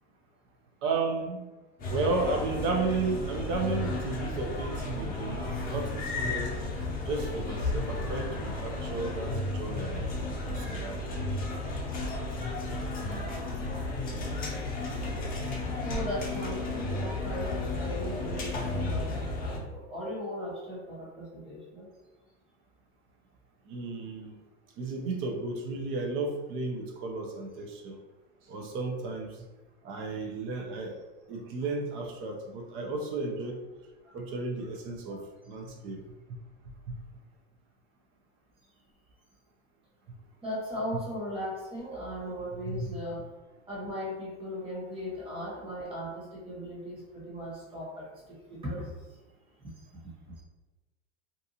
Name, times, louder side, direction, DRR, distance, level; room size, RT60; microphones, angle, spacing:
voice 1, 0.8-1.4 1.9-6.6 7.0-10.1 10.5-11.0 14.9-15.1 23.6-24.3 24.8-28.0 28.5-29.4 29.8-31.0 31.3-33.6 34.1-35.2 35.4-36.0 36.3-36.4 36.9-37.0 42.7-43.0, right 3 dB, 35° right, 2 dB, 0.6 m, -33 dB
sound 1, 1.8-19.6, left 2 dB, 25° left, 0.7 m, -33 dB
voice 2, 15.8-21.9 34.0-34.1 35.1-35.2 40.4-43.2 43.7-48.9 49.6-49.7 50.4-50.5, equal, 15° right, -6 dB, 1.1 m, -38 dB
2.6 x 2.3 x 2.7 m, 1.1 s
supercardioid pair, 125°, 35 cm